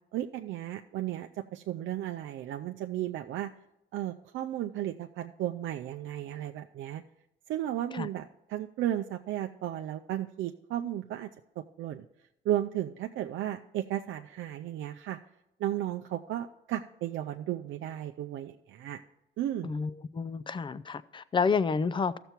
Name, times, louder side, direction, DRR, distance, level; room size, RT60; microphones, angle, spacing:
voice 1, 0.1-3.5 3.9-7.0 7.5-11.3 11.8-12.0 12.4-15.2 15.6-19.0 19.4-19.7, right 12 dB, 75° right, 0.5 m, -34 dB
voice 2, 19.6-22.2, left 5 dB, 25° left, 0.4 m, -29 dB
14.0 x 6.9 x 4.4 m
cardioid pair, 125°, 20 cm